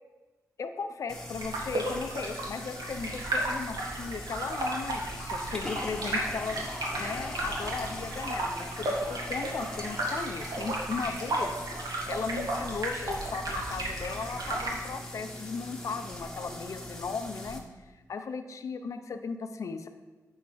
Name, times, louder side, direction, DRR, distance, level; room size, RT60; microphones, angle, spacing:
voice 1, 0.6-6.6 7.0-11.5 11.8-17.6 18.1-19.9, left 5 dB, 55° left, 7 dB, 0.5 m, -36 dB
sound 1, 1.1-17.6, equal, 10° left, 1.0 m, -41 dB
sound 2, 1.4-14.8, right 1 dB, 80° right, 1.7 m, -34 dB
9.4 x 3.6 x 6.1 m, 1.3 s
wide cardioid pair, 120°, 6 cm